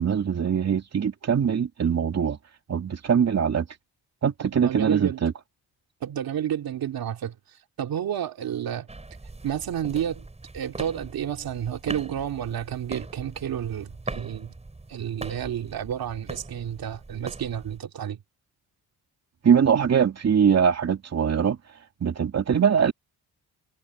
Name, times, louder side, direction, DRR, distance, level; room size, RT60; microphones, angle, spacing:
voice 1, 0.0-2.4 2.7-3.7 4.2-5.3 19.4-21.6 22.0-22.9, right 7 dB, 40° right, 2.7 m, -22 dB
voice 2, 4.4-5.2 6.0-7.4 7.8-8.9 9.4-10.2 10.5-14.5 14.9-18.2, right 10 dB, 65° right, 2.5 m, -30 dB
sound 1, 8.9-17.8, right 2 dB, 15° right, 7.2 m, -41 dB
cardioid pair, 120°, 39 cm